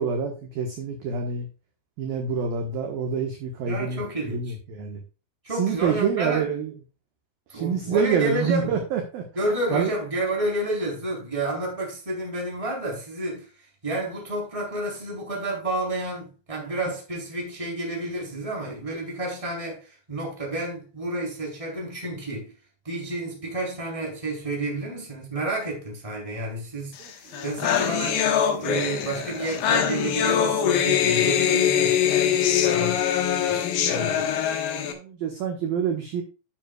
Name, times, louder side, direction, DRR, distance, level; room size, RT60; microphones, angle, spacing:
voice 1, 0.0-1.5 2.0-4.0 4.3-5.0 5.6-6.7 7.5-9.2 9.7-9.9 27.0-27.4 33.3-34.3 34.7-36.2, right 6 dB, 65° right, 2.4 m, -27 dB
voice 2, 3.6-4.5 5.4-6.5 7.5-8.8 9.3-22.5 22.8-28.2 28.6-32.0 32.6-33.0 33.4-34.3, right 1 dB, 10° right, 2.9 m, -30 dB
sound 1, 27.1-27.2 27.3-34.9, left 9 dB, 70° left, 2.3 m, -23 dB
10.5 x 9.8 x 2.3 m
omnidirectional pair, 5.8 m